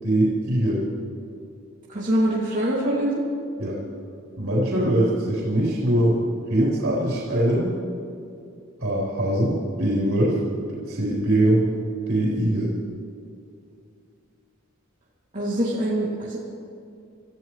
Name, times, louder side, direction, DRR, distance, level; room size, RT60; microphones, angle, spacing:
voice 1, 0.0-0.8 3.6-3.8 4.4-6.1 6.5-7.7 8.8-10.4 10.9-11.6 12.1-12.7, right 1 dB, 85° right, -7 dB, 4.2 m, -22 dB
voice 2, 1.9-3.2 15.3-16.4, right 1 dB, 40° right, -7 dB, 2.6 m, -24 dB
27.5 x 14.5 x 3.2 m, 2.5 s
head